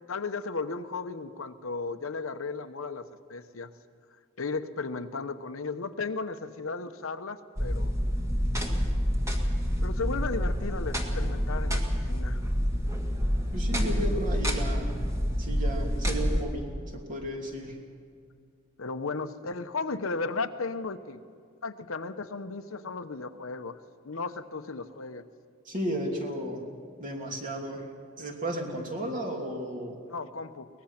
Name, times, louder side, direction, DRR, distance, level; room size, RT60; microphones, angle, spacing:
voice 1, 0.1-3.7 4.4-7.9 9.8-12.4 18.8-21.2 21.6-23.8 24.0-25.2 30.0-30.7, left 4 dB, 85° left, 9 dB, 1.0 m, -35 dB
sound 1, 7.6-16.4, equal, 15° right, 2.0 m, -28 dB
voice 2, 13.5-15.0 15.4-17.8 25.6-26.6 27.0-27.9 28.2-30.0, equal, 40° right, 0 dB, 3.1 m, -34 dB
23.0 x 19.0 x 5.9 m, 2.2 s
head